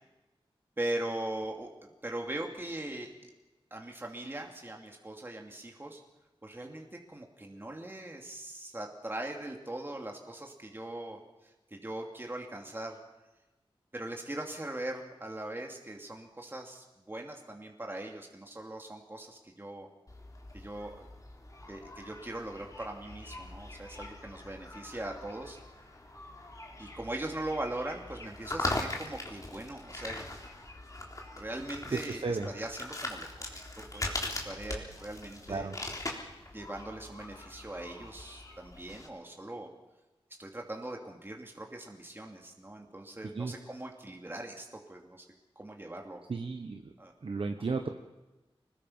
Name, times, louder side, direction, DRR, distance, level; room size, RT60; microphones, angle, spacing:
voice 1, 0.8-3.3 3.7-6.0 6.4-13.0 13.9-19.9 20.5-21.1 21.7-25.6 26.8-30.4 31.4-33.6 33.9-35.7 36.5-39.7 40.4-45.3 45.6-46.2 47.0-47.1, right 1 dB, 20° right, 1 dB, 2.7 m, -40 dB
sound 1, 20.1-39.1, left 2 dB, 35° left, 3.9 m, -41 dB
voice 2, 31.9-32.5 35.5-35.7 43.3-43.5 46.3-46.9 47.2-47.9, right 4 dB, 60° right, 5 dB, 1.3 m, -33 dB
26.0 x 20.5 x 5.7 m, 1.1 s
wide cardioid pair, 100°, 10 cm